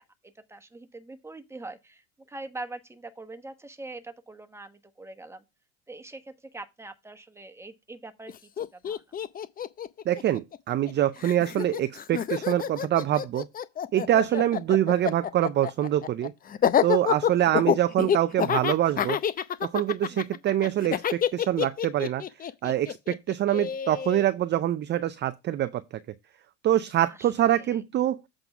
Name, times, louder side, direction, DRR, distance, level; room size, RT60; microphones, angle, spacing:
voice 1, 0.0-5.4 5.9-9.0 14.2-14.4 17.2-17.5 20.1-20.4 27.0-27.8, right 2 dB, 5° right, 1.1 m, -44 dB
Laughter, 8.3-8.4 8.6-10.9 11.2-24.2, left 8 dB, 25° left, 0.6 m, -28 dB
voice 2, 10.1-13.5 13.9-16.3 16.8-19.2 19.6-22.2 22.6-25.8 26.6-28.2, right 12 dB, 30° right, 0.5 m, -25 dB
7.9 x 3.8 x 5.9 m
hypercardioid pair, 90°, 38 cm